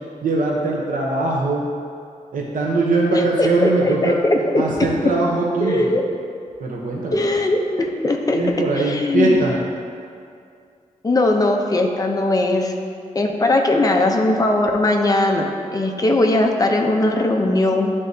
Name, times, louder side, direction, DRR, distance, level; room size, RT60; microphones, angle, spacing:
voice 1, 0.2-1.6 2.3-4.2 4.6-6.0 6.6-7.2 8.3-9.5, right 2 dB, 85° right, -3 dB, 0.8 m, -21 dB
voice 2, 3.1-4.6 5.6-6.0 7.1-8.4 8.7-9.4 11.0-12.7 13.1-17.9, left 2 dB, 25° left, 2 dB, 0.6 m, -19 dB
11.0 x 3.7 x 2.7 m, 2.3 s
wide cardioid pair, 135°, 14 cm